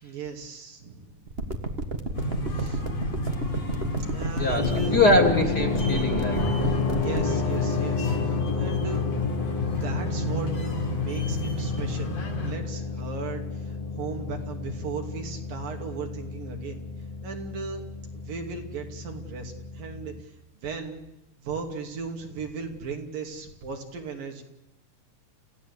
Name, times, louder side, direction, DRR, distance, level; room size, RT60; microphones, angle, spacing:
voice 1, 0.0-1.3 2.6-2.8 4.1-5.0 7.0-9.1 9.7-10.7 11.0-12.1 12.4-16.8 17.2-17.8 18.1-20.4 20.6-21.0 21.4-24.4, right 5 dB, 70° right, 3 dB, 4.5 m, -37 dB
sound 1, 1.3-7.2, right 2 dB, 40° right, 0.9 m, -30 dB
sound 2, 2.1-12.5, left 1 dB, 80° left, 7.9 m, -31 dB
voice 2, 4.4-6.5, left 1 dB, 30° left, 5 dB, 2.7 m, -23 dB
sound 3, 4.6-20.2, left 5 dB, 55° left, 2.5 m, -31 dB
29.0 x 16.0 x 8.4 m, 0.92 s
omnidirectional pair, 4.1 m